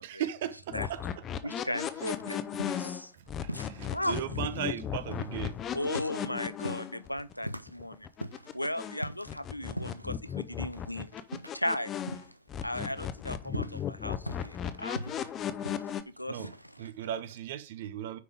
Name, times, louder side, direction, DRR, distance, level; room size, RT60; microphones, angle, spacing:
voice 1, 0.0-1.5 3.2-5.6 15.2-15.3 15.5-15.7 16.3-16.5 16.8-18.2, right 10 dB, 55° right, 0.8 m, -37 dB
sound 1, 0.7-9.0 9.3-12.2 12.5-16.0, left 9 dB, 30° left, 0.8 m, -36 dB
voice 2, 1.4-3.1 3.5-4.2 5.7-8.1 8.5-11.1 11.5-11.9 12.6-15.0 16.1-16.5, left 1 dB, 90° left, 0.4 m, -36 dB
sound 2, 1.9-3.2 3.5-12.5 12.7-17.2, right 1 dB, 90° right, 0.4 m, -43 dB
9.6 x 5.3 x 3.5 m
figure-of-eight pair, 90°, 0 cm